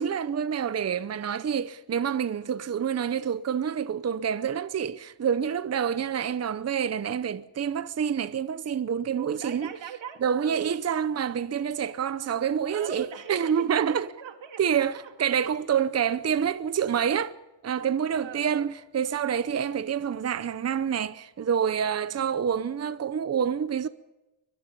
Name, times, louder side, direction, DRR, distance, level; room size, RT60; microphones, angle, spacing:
voice 1, 0.0-9.7 10.2-14.1 14.6-17.3 17.6-23.9, right 8 dB, 35° right, 0.7 m, -27 dB
voice 2, 9.2-10.7 12.7-15.1 16.0-16.2 18.1-18.7 19.7-19.9 22.0-22.3, right 8 dB, 85° right, 2.8 m, -41 dB
24.5 x 22.5 x 5.3 m
wide cardioid pair, 155°, 44 cm